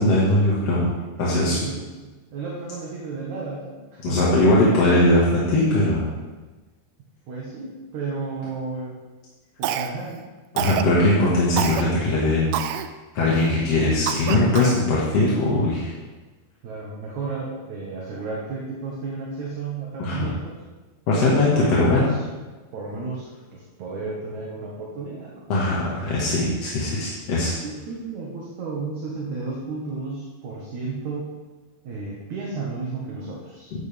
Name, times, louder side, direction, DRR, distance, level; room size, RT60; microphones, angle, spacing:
voice 1, 0.0-1.6 4.0-6.1 10.5-12.4 13.1-15.9 20.0-20.3 21.1-22.1 25.5-27.5, left 2 dB, 50° left, -6 dB, 2.4 m, -20 dB
voice 2, 1.2-4.2 7.3-9.0 9.6-10.3 16.6-20.6 21.3-22.2 22.7-25.4 27.6-31.3 31.8-33.7, right 4 dB, 55° right, -4 dB, 2.5 m, -33 dB
Cough, 9.6-10.2 10.6-10.9 11.6-11.8 12.5-12.9 13.4-13.5 14.1-14.8, right 10 dB, 80° right, 2.5 m, -27 dB
14.5 x 11.5 x 3.5 m, 1.2 s
omnidirectional pair, 4.7 m